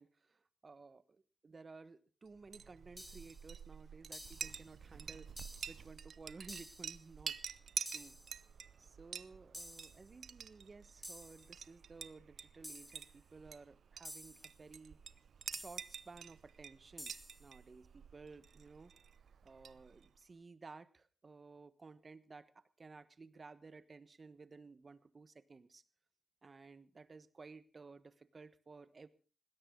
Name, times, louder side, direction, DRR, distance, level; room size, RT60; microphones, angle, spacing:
voice 1, 0.0-5.3 5.7-7.4 7.9-8.1 8.8-15.0 15.5-17.1 17.4-18.9 19.4-25.8 26.4-29.1, right 4 dB, 40° right, 14 dB, 1.3 m, -56 dB
Chink clink, 2.4-20.2, right 7 dB, 75° right, 0.7 m, -49 dB
sound 1, 3.0-3.5 4.1-4.6 5.4-5.9 6.5-7.0 7.9-8.4 9.5-10.1 11.0-11.5 12.6-13.1 14.0-14.6 15.5-16.0 17.0-17.5, equal, ahead, 1.9 m, -51 dB
20.0 x 17.0 x 3.9 m, 0.36 s
cardioid pair, 90°, 0 cm